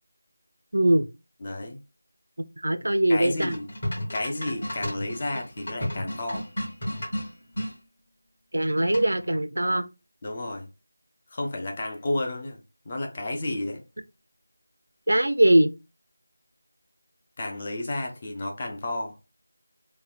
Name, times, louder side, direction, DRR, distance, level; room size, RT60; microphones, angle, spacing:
voice 1, 0.7-1.1 2.6-3.5 8.5-9.8 15.1-15.7, right 1 dB, 80° right, 0.4 m, -21 dB
voice 2, 1.4-1.8 3.1-3.7 4.1-6.5 10.2-10.7 11.3-12.6 12.9-13.8 17.4-19.1, left 2 dB, 25° left, 0.5 m, -31 dB
sound 1, 3.4-7.7 8.9-9.3, equal, 40° left, 1.5 m, -33 dB
3.2 x 2.1 x 2.4 m
figure-of-eight pair, 175°, 0 cm